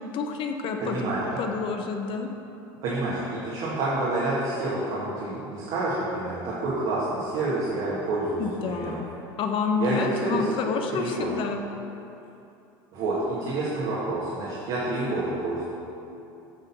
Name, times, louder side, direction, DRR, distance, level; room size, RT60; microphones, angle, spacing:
voice 1, 0.1-1.0 1.4-2.3 8.4-9.1 9.4-11.7, left 5 dB, 50° left, 4 dB, 0.8 m, -28 dB
voice 2, 0.8-1.4 2.8-9.0 9.8-10.0 10.2-10.5 10.9-11.3 12.9-15.6, right 2 dB, 65° right, -8 dB, 1.8 m, -28 dB
8.7 x 4.1 x 5.6 m, 2.8 s
supercardioid pair, 100°, 11 cm